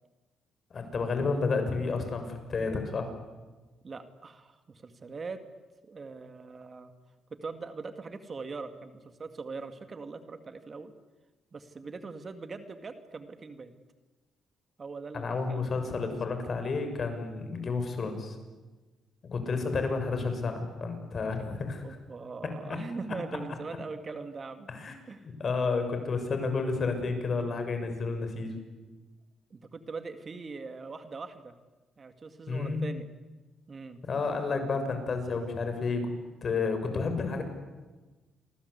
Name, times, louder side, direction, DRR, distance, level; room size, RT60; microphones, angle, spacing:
voice 1, 0.7-3.1 15.1-18.4 19.3-21.8 24.7-24.9 25.4-28.6 32.5-32.9 34.0-37.4, left 4 dB, 45° left, 6 dB, 6.6 m, -31 dB
voice 2, 3.8-5.4 5.8-6.9 7.3-10.9 11.5-13.7 14.8-16.1 21.8-24.7 25.1-25.3 29.5-31.5 32.0-33.1 33.7-34.0, right 4 dB, 35° right, 8 dB, 2.3 m, -41 dB
28.5 x 24.0 x 8.3 m, 1.2 s
cardioid pair, 90°, 0 cm